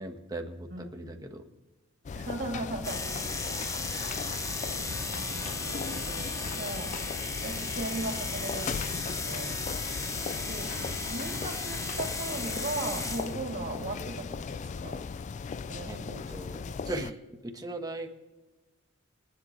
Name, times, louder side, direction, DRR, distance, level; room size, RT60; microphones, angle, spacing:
voice 1, 0.0-1.4 10.8-11.1 15.8-16.0 16.3-17.2 17.4-18.1, right 2 dB, 20° right, 3 dB, 1.4 m, -38 dB
voice 2, 0.7-1.2 2.1-3.3 3.9-4.7 5.0-7.0 7.4-9.6 10.5-15.1 15.7-16.8, right 2 dB, 50° right, 1 dB, 3.0 m, -38 dB
sound 1, 2.0-17.1, left 5 dB, 35° left, 0.3 m, -38 dB
sound 2, 2.8-13.4, left 3 dB, 15° left, 0.9 m, -35 dB
23.5 x 10.5 x 3.3 m, 1.2 s
head